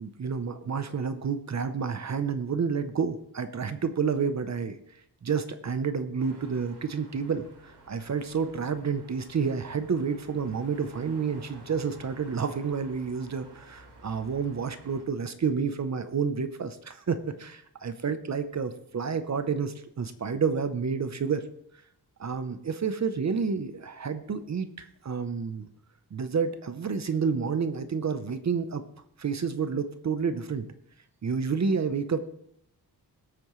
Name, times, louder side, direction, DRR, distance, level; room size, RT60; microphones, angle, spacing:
voice 1, 0.0-4.8 5.2-21.5 22.2-25.7 26.1-28.8 29.2-30.7 31.2-32.3, right 6 dB, 40° right, 10 dB, 0.8 m, -30 dB
sound 1, 6.2-15.1, right 2 dB, 70° right, 3.2 m, -52 dB
20.5 x 8.5 x 3.2 m, 0.71 s
wide cardioid pair, 160°, 41 cm